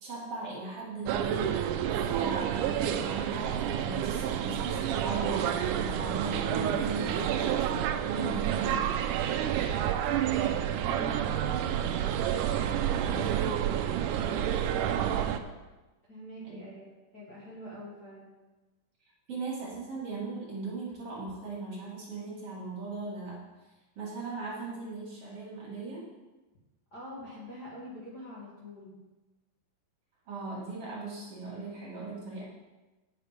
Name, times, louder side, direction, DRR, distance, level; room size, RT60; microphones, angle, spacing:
voice 1, 0.0-1.7 2.1-9.1 13.0-13.6 16.4-16.7 19.3-23.4 24.0-26.0 30.3-32.4, right 3 dB, 45° right, -5 dB, 2.7 m, -38 dB
sound 1, 1.1-15.4, right 10 dB, 80° right, 1.9 m, -29 dB
voice 2, 10.8-11.9 14.0-14.4 16.1-16.8 17.1-18.3 26.9-29.0, equal, 40° left, -8 dB, 1.6 m, -45 dB
9.4 x 6.6 x 5.0 m, 1.1 s
omnidirectional pair, 4.2 m